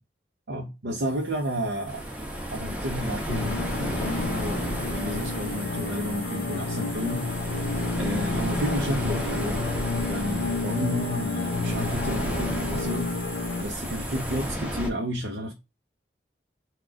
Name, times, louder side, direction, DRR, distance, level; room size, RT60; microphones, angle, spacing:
voice 1, 0.5-2.1 2.5-9.6 10.1-13.1 13.6-15.5, equal, 85° right, 0.8 m, -32 dB
sound 1, 0.9-14.5, right 2 dB, 30° right, 1.4 m, -42 dB
sound 2, 1.9-14.9, equal, 5° right, 0.8 m, -33 dB
sound 3, 3.3-13.6, left 3 dB, 75° left, 0.6 m, -30 dB
4.1 x 2.4 x 4.5 m
head